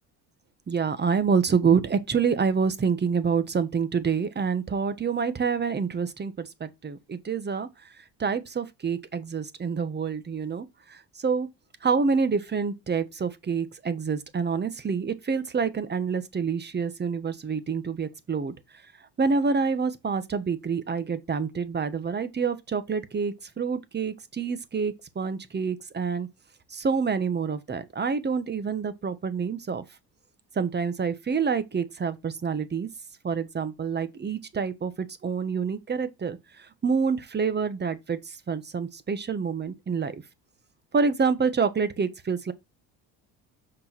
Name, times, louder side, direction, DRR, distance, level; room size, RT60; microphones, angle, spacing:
voice 1, 0.7-7.7 8.2-11.5 11.8-18.5 19.2-26.3 26.7-29.8 30.5-32.9 33.2-40.2 40.9-42.5, right 5 dB, 25° right, 1.3 m, -27 dB
6.5 x 5.3 x 5.9 m
supercardioid pair, 95°, 39 cm